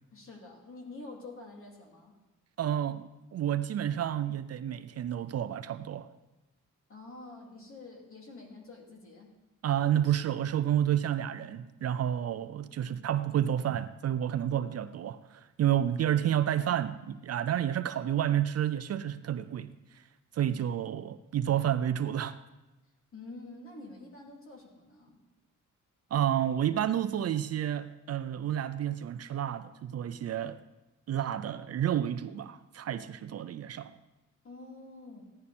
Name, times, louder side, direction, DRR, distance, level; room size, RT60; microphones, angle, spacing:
voice 1, 0.1-2.2 6.9-9.4 23.1-25.2 34.4-35.3, left 2 dB, 45° left, 2.9 m, -47 dB
voice 2, 2.6-6.1 9.6-19.7 19.9-20.0 20.3-22.4 26.1-30.6 31.1-33.9, right 10 dB, 50° right, 0.5 m, -30 dB
15.5 x 11.0 x 4.3 m
cardioid pair, 140°, 31 cm